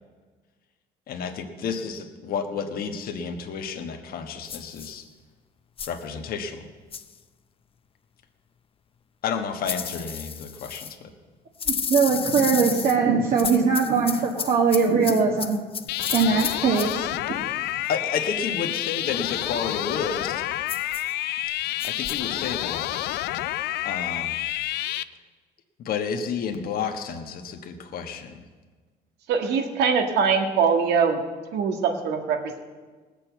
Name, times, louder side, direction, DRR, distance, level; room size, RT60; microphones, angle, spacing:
voice 1, 1.1-5.0 5.9-6.6 9.2-11.1 17.9-20.4 21.8-22.9 23.8-24.4 25.8-28.4, left 6 dB, 60° left, 4 dB, 1.4 m, -31 dB
sound 1, 4.5-4.9 5.8-6.0 6.9-7.2 9.6-10.9 11.6-13.0 13.4-17.0 20.7-21.1 21.8-22.2, left 7 dB, 35° left, 0.7 m, -32 dB
voice 2, 11.9-15.6 16.1-17.4, right 5 dB, 55° right, -2 dB, 1.6 m, -21 dB
sound 2, 15.9-25.0, left 14 dB, 80° left, 0.5 m, -29 dB
voice 3, 29.3-31.2 31.5-32.6, right 6 dB, 85° right, 4 dB, 1.8 m, -22 dB
18.5 x 6.9 x 8.0 m, 1.4 s
cardioid pair, 110°, 17 cm